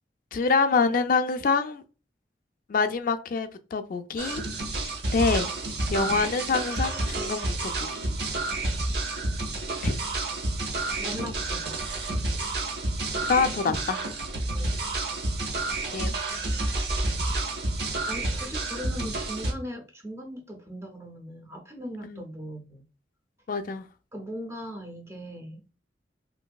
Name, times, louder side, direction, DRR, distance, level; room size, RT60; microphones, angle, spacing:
voice 1, 0.3-1.8 2.7-4.4 4.8-5.5 5.9-7.9 9.8-10.0 10.8-11.0 13.3-14.0 15.9-16.1 22.0-22.2 23.5-23.8, left 4 dB, 50° left, 0.3 m, -26 dB
sound 1, 4.2-19.5, right 2 dB, 65° right, 0.9 m, -29 dB
voice 2, 6.0-6.3 11.0-11.8 14.5-14.8 18.0-22.8 24.1-25.6, equal, 15° right, 0.5 m, -39 dB
3.0 x 2.6 x 2.3 m
head